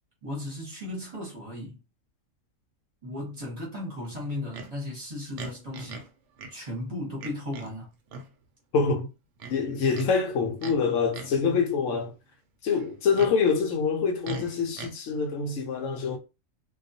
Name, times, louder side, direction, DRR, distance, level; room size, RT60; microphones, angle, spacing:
voice 1, 0.2-1.8 3.0-6.1 6.5-7.9, left 1 dB, 35° right, 0.9 m, -36 dB
Livestock farm animals working animals, 4.5-4.7 5.4-6.1 6.4-6.5 7.2-7.7 8.1-8.3 9.4-10.1 10.6-10.8 11.1-11.4 12.8-13.4 14.2-14.9, right 3 dB, 70° right, 0.9 m, -40 dB
voice 2, 8.7-9.1 9.5-12.1 12.6-16.2, left 5 dB, 70° left, 0.9 m, -25 dB
2.3 x 2.2 x 2.6 m
omnidirectional pair, 1.4 m